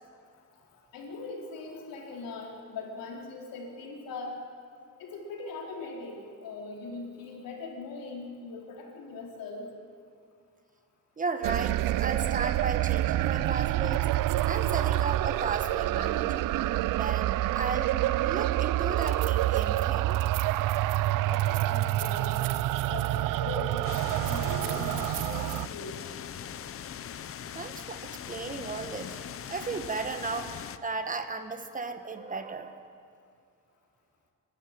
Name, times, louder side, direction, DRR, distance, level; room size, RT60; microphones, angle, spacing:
voice 1, 0.6-4.4 5.0-9.7 21.2-22.4 22.7-23.8 24.2-26.0, left 3 dB, 85° left, 0 dB, 4.0 m, -40 dB
voice 2, 11.2-14.1 14.5-16.5 16.9-18.0 18.2-20.2 27.5-29.2 29.5-30.5 30.8-32.8, right 4 dB, 25° right, 8 dB, 1.1 m, -35 dB
sound 1, 11.4-25.7, right 15 dB, 75° right, 0.5 m, -27 dB
sound 2, 23.8-30.8, left 9 dB, 40° left, 0.7 m, -40 dB
23.5 x 12.5 x 9.9 m, 2.3 s
cardioid pair, 155°, 33 cm